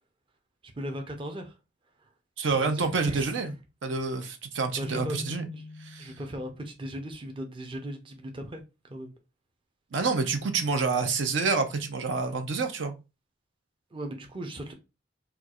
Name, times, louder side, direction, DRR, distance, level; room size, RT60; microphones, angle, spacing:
voice 1, 0.8-1.6 2.0-2.1 2.6-3.6 4.8-5.2 5.5-5.6 6.0-9.1 13.9-14.7, equal, 30° right, 0.6 m, -38 dB
voice 2, 2.4-3.5 3.8-5.5 5.8-6.1 9.9-12.9, right 4 dB, 70° right, 0.6 m, -28 dB
Keyboard (musical), 4.8-6.7, left 3 dB, 20° left, 0.4 m, -42 dB
4.3 x 2.4 x 2.3 m
head